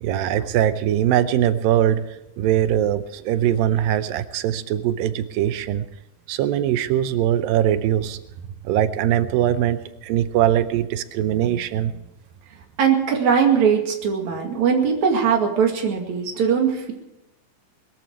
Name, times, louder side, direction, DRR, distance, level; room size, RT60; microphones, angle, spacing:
voice 1, 0.0-2.0 2.4-5.9 6.3-8.2 8.6-11.9, right 11 dB, 90° right, 12 dB, 2.5 m, -21 dB
voice 2, 12.8-16.9, right 7 dB, 55° right, 2 dB, 3.5 m, -20 dB
21.5 x 13.5 x 4.7 m, 0.90 s
omnidirectional pair, 4.0 m